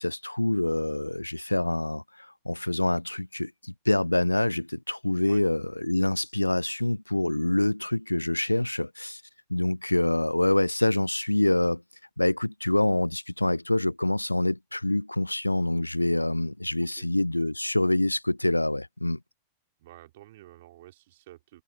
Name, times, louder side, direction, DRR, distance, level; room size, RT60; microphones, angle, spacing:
voice 1, 0.0-9.2 9.5-11.8 12.2-19.2, left 1 dB, 85° left, 0.5 m, -26 dB
voice 2, 19.8-21.6, right 16 dB, 55° right, 3.7 m, -50 dB
figure-of-eight pair, 90°, 0 cm